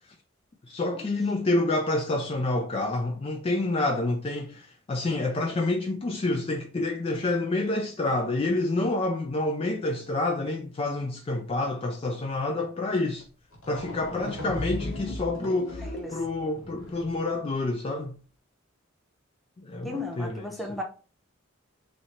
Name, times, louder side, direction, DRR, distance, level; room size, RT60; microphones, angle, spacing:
voice 1, 0.7-13.3 13.7-18.1 19.6-20.8, left 2 dB, 30° left, 0.3 m, -28 dB
sound 1, 13.2-13.3 13.5-17.3, left 1 dB, 85° left, 1.0 m, -37 dB
voice 2, 19.8-20.8, left 2 dB, ahead, 0.8 m, -34 dB
3.1 x 2.7 x 4.1 m
head